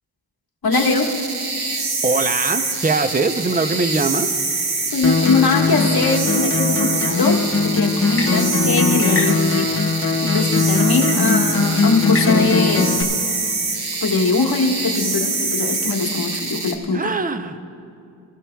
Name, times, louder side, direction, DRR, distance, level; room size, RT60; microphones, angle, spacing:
voice 1, 0.6-1.1 4.9-9.8 10.2-12.9 14.0-17.0, left 3 dB, 55° left, 0 dB, 1.6 m, -21 dB
sound 1, 0.7-16.7, right 3 dB, 55° right, 1.4 m, -25 dB
voice 2, 2.0-4.3 16.9-17.6, right 3 dB, 20° right, 10 dB, 0.6 m, -21 dB
Acoustic guitar, 5.0-13.0, left 4 dB, 30° left, 1.1 m, -20 dB
21.0 x 15.0 x 2.3 m, 2.5 s
wide cardioid pair, 75°, 45 cm